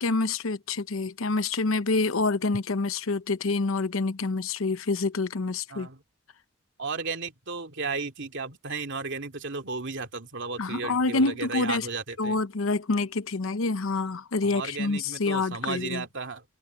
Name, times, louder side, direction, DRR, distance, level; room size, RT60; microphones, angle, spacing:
voice 1, 0.0-5.9 10.6-11.9 12.2-16.0, left 3 dB, 75° left, 0.8 m, -27 dB
voice 2, 5.7-6.0 6.8-12.4 14.4-16.4, right 4 dB, 60° right, 2.7 m, -34 dB
head